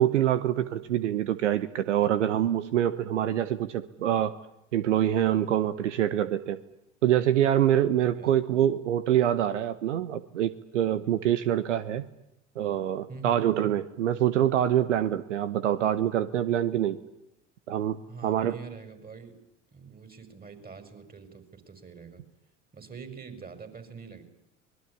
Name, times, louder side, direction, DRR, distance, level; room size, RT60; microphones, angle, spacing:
voice 1, 0.0-4.3 4.7-6.6 7.0-12.1 12.6-17.0 17.7-18.6, right 11 dB, 80° right, 13 dB, 1.1 m, -25 dB
voice 2, 13.1-13.5 18.1-19.4 19.7-22.2 22.7-24.2, right 5 dB, 25° right, 10 dB, 5.5 m, -44 dB
25.0 x 20.5 x 9.7 m, 0.85 s
figure-of-eight pair, 65°, 36 cm